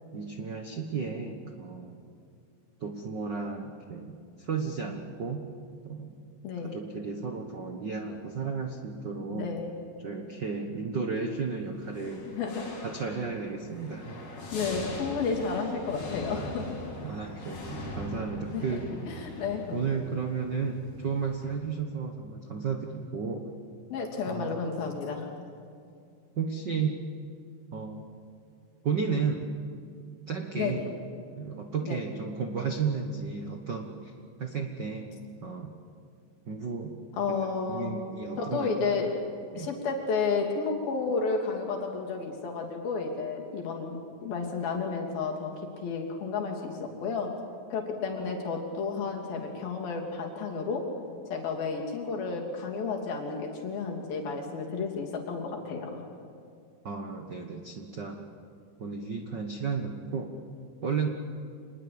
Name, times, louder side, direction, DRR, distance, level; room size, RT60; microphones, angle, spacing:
voice 1, 0.1-2.0 2.8-5.4 5.8-6.1 6.6-9.5 10.0-12.3 12.8-14.2 17.0-18.9 19.7-23.5 24.3-24.5 26.3-27.0 27.7-28.0 28.8-29.5 30.3-30.8 31.4-34.1 34.4-35.7 36.5-37.0 37.4-38.7 39.5-39.7 56.8-58.2 58.8-60.3 60.8-61.1, right 5 dB, 70° right, 4 dB, 1.0 m, -33 dB
voice 2, 6.4-6.8 9.3-9.7 12.3-12.7 13.1-13.2 14.5-16.8 18.5-19.8 23.9-25.3 30.5-30.9 31.8-32.0 37.1-37.9 38.4-39.1 39.6-47.3 47.7-50.9 51.2-56.0, left 4 dB, 75° left, 0 dB, 4.8 m, -32 dB
sound 1, 11.8-21.6, left 2 dB, 55° left, 5.0 m, -41 dB
26.5 x 20.5 x 8.7 m, 2.4 s
omnidirectional pair, 4.2 m